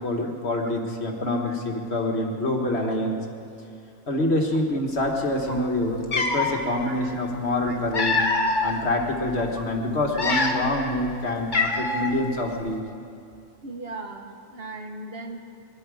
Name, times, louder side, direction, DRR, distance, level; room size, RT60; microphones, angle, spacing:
voice 1, 0.0-3.2 4.1-8.2 8.6-12.8, left 1 dB, 50° left, 2 dB, 1.8 m, -26 dB
Cat, 5.6-5.7 6.0-6.6 7.5-8.7 9.3-9.5 10.0-10.8 11.1-11.2 11.5-12.1, left 3 dB, 35° left, 1.4 m, -24 dB
voice 2, 10.8-11.2 12.3-12.4 13.6-15.4, right 2 dB, 50° right, 3 dB, 1.3 m, -38 dB
22.0 x 12.0 x 4.9 m, 2.3 s
omnidirectional pair, 1.4 m